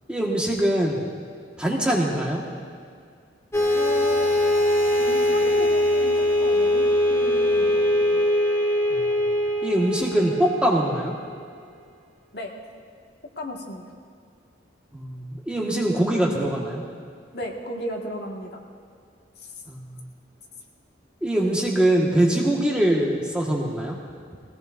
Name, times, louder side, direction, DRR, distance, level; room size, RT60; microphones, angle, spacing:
voice 1, 0.1-1.0 1.6-2.4 8.9-9.2 9.6-11.1 14.9-16.8 19.7-20.0 21.2-24.0, right 1 dB, 5° right, -3 dB, 1.6 m, -23 dB
sound 1, 3.5-11.3, left 1 dB, 15° left, 1.4 m, -22 dB
voice 2, 3.7-4.3 5.0-7.8 8.1-8.2 12.3-12.5 13.4-13.8 17.3-18.6 19.4-19.5, left 1 dB, 60° left, -1 dB, 1.8 m, -35 dB
22.5 x 17.5 x 2.6 m, 2.2 s
head